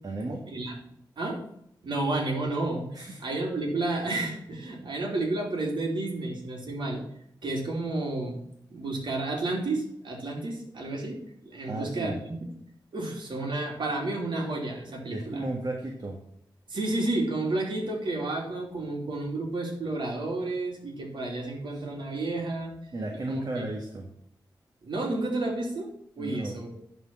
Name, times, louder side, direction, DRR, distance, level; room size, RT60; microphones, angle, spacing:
voice 1, 0.0-0.4 2.9-3.2 11.6-12.2 15.1-16.2 21.7-21.8 22.9-24.1 26.2-26.6, right 2 dB, 50° right, 1 dB, 1.6 m, -34 dB
voice 2, 1.8-7.0 7.4-8.4 8.7-11.2 11.4-12.4 12.9-15.4 16.7-22.7 23.3-23.7 24.8-25.9 26.2-26.8, right 2 dB, 70° right, 0 dB, 3.1 m, -31 dB
11.5 x 4.5 x 6.0 m, 0.72 s
wide cardioid pair, 85°, 8 cm